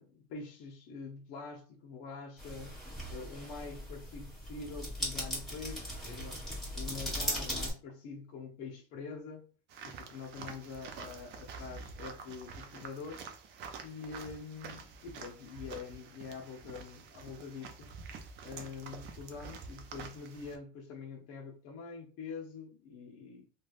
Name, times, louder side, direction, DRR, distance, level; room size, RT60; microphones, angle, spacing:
voice 1, 0.0-2.7 3.0-6.4 6.7-9.5 9.8-13.3 13.8-17.9 18.4-23.5, left 5 dB, 45° left, 0.6 m, -45 dB
sound 1, 2.4-7.7, equal, ahead, 1.2 m, -38 dB
sound 2, 9.7-20.6, right 5 dB, 35° right, 0.4 m, -48 dB
3.1 x 2.3 x 2.3 m
supercardioid pair, 140°, 33 cm